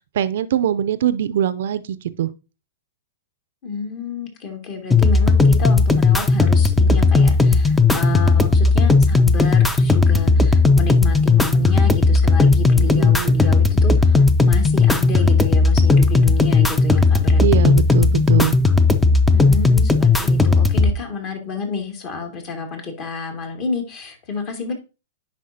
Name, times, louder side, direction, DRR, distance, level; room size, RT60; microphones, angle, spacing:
voice 1, 0.1-2.3 12.8-13.4 17.4-18.6, right 10 dB, 65° right, 0.5 m, -22 dB
voice 2, 3.6-17.7 19.3-24.7, left 4 dB, 40° left, 2.3 m, -30 dB
sound 1, 4.9-20.9, left 3 dB, 5° left, 0.6 m, -15 dB
10.0 x 4.8 x 2.8 m
hypercardioid pair, 115°, 0 cm